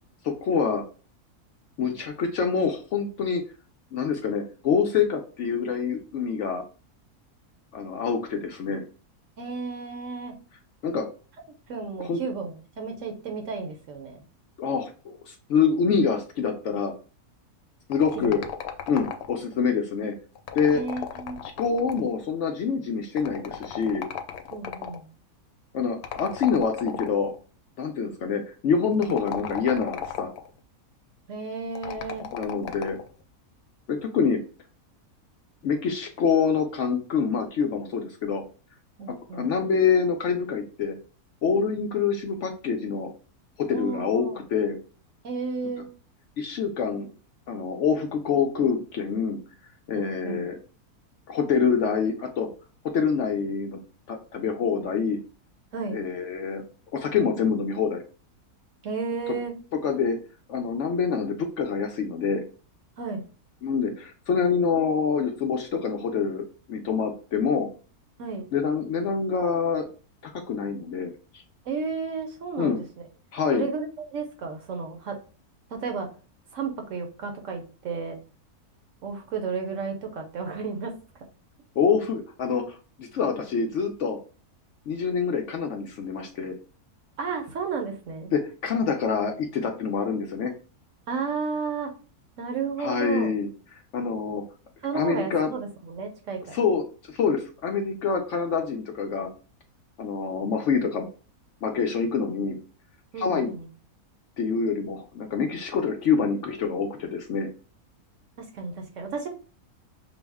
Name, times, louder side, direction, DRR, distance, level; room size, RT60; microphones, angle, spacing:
voice 1, 0.2-0.8 1.8-3.4 3.9-6.6 7.7-8.8 10.8-11.0 12.0-12.2 14.6-16.9 17.9-18.4 18.9-20.1 20.5-20.8 21.4-24.0 25.7-27.3 27.8-30.3 32.3-33.0 33.9-34.4 35.6-38.4 39.1-41.0 41.4-43.1 43.6-44.8 46.4-47.1 47.5-49.4 49.9-50.5 51.3-52.5 52.9-53.8 54.1-55.2 55.9-56.6 56.9-58.0 59.8-60.2 60.5-62.4 63.6-67.7 68.5-69.9 70.2-71.4 72.6-72.8 73.3-73.6 81.8-84.2 84.9-86.5 88.3-90.5 92.8-93.5 93.9-94.4 94.9-95.5 96.5-99.3 100.0-101.1 101.6-102.6 103.2-103.5 104.4-107.5, left 6 dB, 65° left, 3 dB, 0.8 m, -26 dB
voice 2, 9.4-10.4 11.7-14.2 18.2-18.3 20.7-21.4 24.5-25.1 31.3-32.3 39.0-39.5 43.7-44.4 45.2-45.9 50.0-50.5 55.7-56.0 58.8-59.5 63.0-63.3 68.2-68.5 71.6-72.9 73.5-75.2 75.7-76.1 76.5-78.2 79.0-80.9 87.2-88.3 91.1-91.9 92.4-93.3 94.8-96.5 103.1-103.7 108.4-109.3, right 4 dB, 60° right, 4 dB, 0.9 m, -32 dB
sound 1, 17.9-19.5 20.4-22.2 23.2-25.0 26.0-27.4 28.9-30.5 31.8-33.1, left 8 dB, 85° left, 1.1 m, -35 dB
6.1 x 2.0 x 3.4 m, 0.37 s
omnidirectional pair, 1.6 m